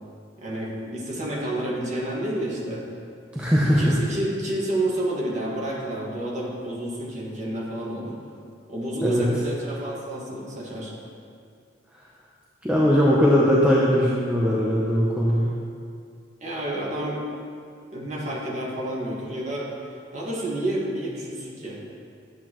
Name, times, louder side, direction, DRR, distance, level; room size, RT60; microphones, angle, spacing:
voice 1, 0.4-2.9 3.7-8.2 8.7-10.9 16.4-17.3 17.9-19.7 20.1-21.8, right 1 dB, 40° right, -5 dB, 1.8 m, -29 dB
voice 2, 3.3-3.8 9.0-9.3 12.6-15.6, equal, 5° right, -5 dB, 0.7 m, -20 dB
10.5 x 8.1 x 3.1 m, 2.3 s
head